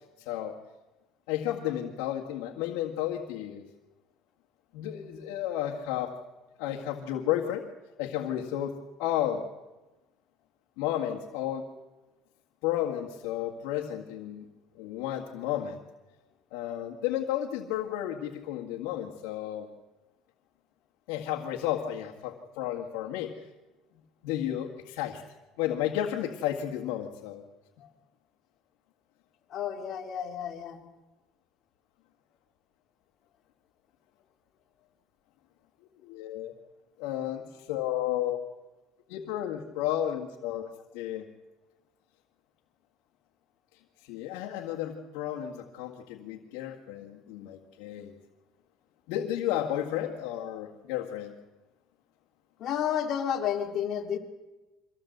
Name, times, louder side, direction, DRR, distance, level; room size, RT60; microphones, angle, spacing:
voice 1, 0.2-0.6 1.3-3.6 4.7-6.1 6.6-7.7 8.0-9.5 10.8-11.7 12.6-14.4 14.7-15.8 16.5-19.7 21.1-23.5 24.2-25.2 25.6-27.4 36.0-36.5 37.0-38.4 39.1-40.7 40.9-41.3 44.0-48.2 49.1-51.3, left 11 dB, 85° left, 0 dB, 2.0 m, -32 dB
voice 2, 29.5-30.8 52.6-54.2, left 9 dB, 50° left, 3 dB, 3.0 m, -31 dB
24.5 x 16.5 x 8.1 m, 1.1 s
cardioid pair, 125°, 0 cm